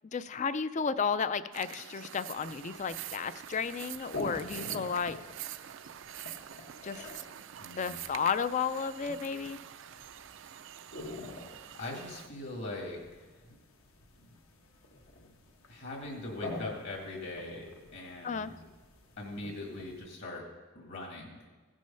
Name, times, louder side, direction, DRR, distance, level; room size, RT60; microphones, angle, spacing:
voice 1, 0.1-5.2 6.8-7.1 7.7-9.6 18.2-18.5, left 6 dB, 35° left, 14 dB, 0.4 m, -33 dB
sound 1, 1.5-12.3, right 11 dB, 60° right, 0.4 m, -45 dB
sound 2, 2.4-20.0, left 2 dB, 70° left, 1.3 m, -48 dB
voice 2, 7.6-8.0 11.7-13.6 14.2-14.4 15.2-15.3 15.7-17.7 17.9-18.5 19.2-20.4 20.8-21.4, left 2 dB, 55° left, -1 dB, 1.9 m, -41 dB
16.0 x 6.3 x 5.6 m, 1.3 s
head